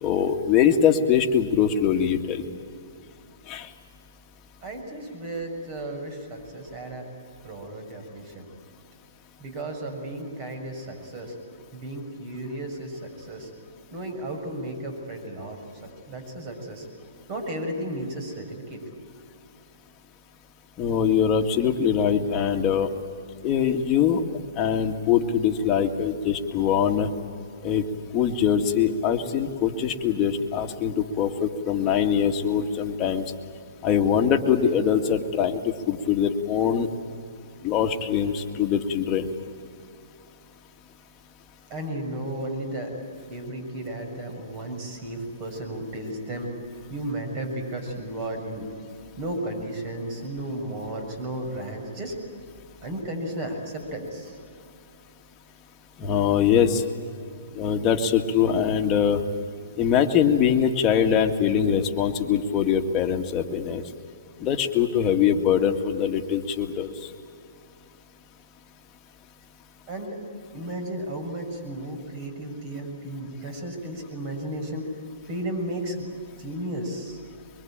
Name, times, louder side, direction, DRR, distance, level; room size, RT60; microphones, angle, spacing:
voice 1, 0.0-2.4 3.5-3.7 20.8-22.9 23.4-24.2 24.6-27.1 27.6-27.8 28.1-33.2 33.8-35.6 35.9-36.9 37.6-39.3 56.0-56.8 57.6-59.2 59.8-63.8 64.4-67.1, left 8 dB, 25° left, 3 dB, 2.0 m, -23 dB
voice 2, 4.6-7.0 7.4-8.4 9.4-11.3 11.7-13.5 13.9-15.6 16.1-16.9 17.3-18.8 41.7-42.9 43.3-46.5 46.9-48.7 49.2-52.2 52.8-54.4 69.9-70.2 70.5-74.9 75.3-76.1 76.4-77.2, right 1 dB, 40° right, 4 dB, 6.6 m, -34 dB
23.5 x 23.5 x 8.9 m, 2.5 s
hypercardioid pair, 135°, 0 cm